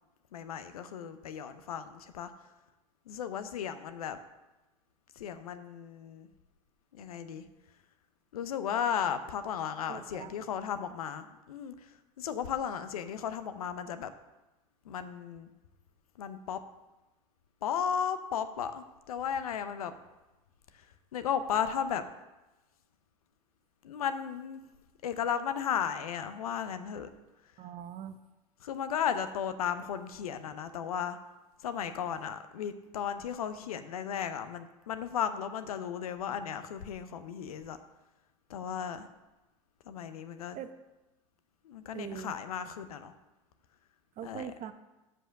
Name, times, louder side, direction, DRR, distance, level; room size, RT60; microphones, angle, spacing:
voice 1, 0.3-2.3 3.1-4.2 5.2-6.3 6.9-7.4 8.3-11.7 12.2-14.1 14.9-15.5 16.2-16.6 17.6-19.9 21.1-22.0 23.8-24.6 25.0-27.1 28.6-31.2 31.6-37.8 38.5-39.1 39.9-40.6 41.6-43.1 44.2-44.4, left 8 dB, 80° left, 11 dB, 0.7 m, -35 dB
voice 2, 9.9-10.3 27.6-28.2 40.5-40.7 41.9-42.4 44.2-44.7, right 9 dB, 45° right, 10 dB, 0.8 m, -41 dB
7.6 x 5.3 x 6.4 m, 1.1 s
hypercardioid pair, 80°, 18 cm